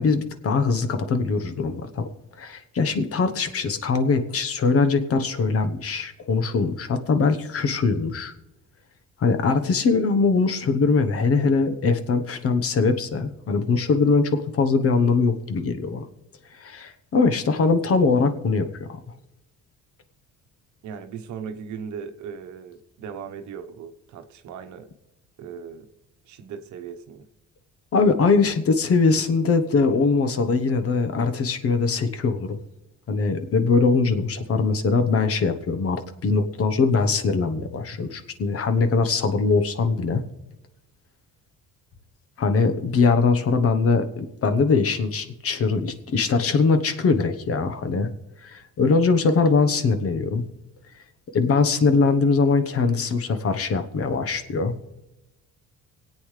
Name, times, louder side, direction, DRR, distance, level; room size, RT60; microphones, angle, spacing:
voice 1, 0.0-2.1 2.4-8.3 9.2-16.1 16.6-19.0 27.9-32.6 33.1-40.2 42.4-48.1 48.4-50.4 51.3-54.7, left 4 dB, 50° left, 9 dB, 1.1 m, -22 dB
voice 2, 20.8-24.9 25.4-25.9 26.2-27.3, right 7 dB, 70° right, 7 dB, 1.0 m, -38 dB
25.0 x 8.6 x 3.3 m, 0.96 s
cardioid pair, 95°, 30 cm